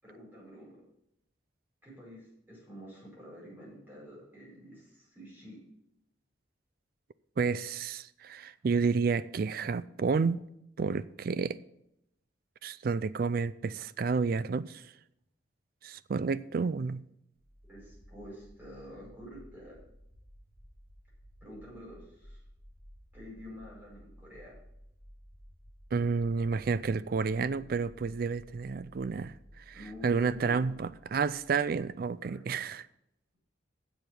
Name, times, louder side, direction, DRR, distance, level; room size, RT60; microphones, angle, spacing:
voice 1, 0.0-0.8 1.8-5.6 17.7-19.8 21.4-22.4 23.1-24.5 29.7-30.8 32.2-32.7, equal, 10° right, 4.9 m, -48 dB
voice 2, 7.4-10.4 10.8-11.6 12.6-14.8 15.8-17.0 25.9-29.7 30.0-32.9, right 5 dB, 50° right, 0.3 m, -30 dB
sound 1, 17.3-32.1, equal, 25° left, 3.3 m, -55 dB
7.9 x 6.8 x 8.2 m
head